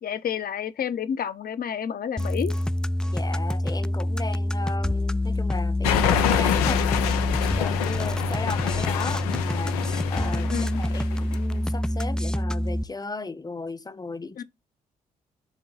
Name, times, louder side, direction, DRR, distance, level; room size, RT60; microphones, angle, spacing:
voice 1, 0.0-2.5 10.5-10.8 14.4-14.5, left 8 dB, 50° left, 1.0 m, -30 dB
sound 1, 2.2-12.8, left 1 dB, 5° left, 0.4 m, -26 dB
voice 2, 3.1-6.8 7.6-10.5 10.8-14.4, left 3 dB, 20° left, 1.0 m, -36 dB
sound 2, 5.8-11.4, left 10 dB, 80° left, 0.7 m, -27 dB
7.4 x 3.1 x 5.6 m
hypercardioid pair, 45°, 19 cm